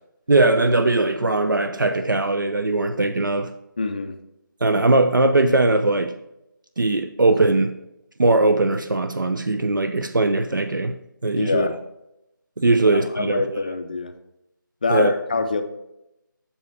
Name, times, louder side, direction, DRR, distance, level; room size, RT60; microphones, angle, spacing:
voice 1, 0.3-3.5 4.6-6.1 6.8-7.8 8.2-11.7 12.6-13.4 14.9-15.1, right 2 dB, 70° right, 0.6 m, -20 dB
voice 2, 3.8-4.2 11.3-11.8 12.9-14.1 14.8-15.6, left 3 dB, 25° left, 0.5 m, -25 dB
7.2 x 7.1 x 3.3 m
figure-of-eight pair, 160°, 11 cm